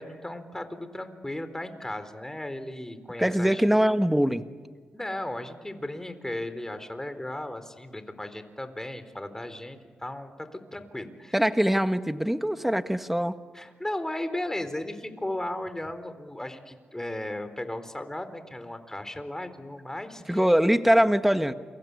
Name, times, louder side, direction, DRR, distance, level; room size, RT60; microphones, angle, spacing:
voice 1, 0.0-3.6 4.9-11.4 13.5-20.4, left 1 dB, 15° left, 10 dB, 4.0 m, -36 dB
voice 2, 3.2-4.4 11.3-13.3 20.3-21.5, equal, 5° right, 9 dB, 1.6 m, -22 dB
29.0 x 24.5 x 8.4 m, 1.5 s
supercardioid pair, 45°, 4 cm